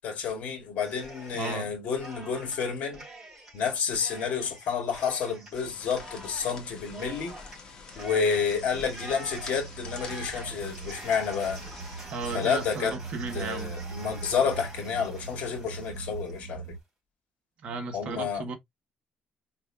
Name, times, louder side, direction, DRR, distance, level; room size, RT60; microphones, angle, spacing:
voice 1, 0.0-3.0 3.5-7.4 7.9-11.6 12.3-13.0 13.3-16.8 17.9-18.4, left 6 dB, 55° left, 2.2 m, -30 dB
Cheering, 0.8-1.7 2.0-16.4, right 1 dB, 15° right, 3.7 m, -46 dB
voice 2, 1.3-1.7 12.1-13.7 17.6-18.6, right 4 dB, 45° right, 1.2 m, -35 dB
sound 1, 5.5-12.1, left 4 dB, 30° left, 1.7 m, -47 dB
sound 2, 8.3-16.8, right 4 dB, 85° right, 0.7 m, -41 dB
5.2 x 4.0 x 2.3 m
cardioid pair, 165°, 3 cm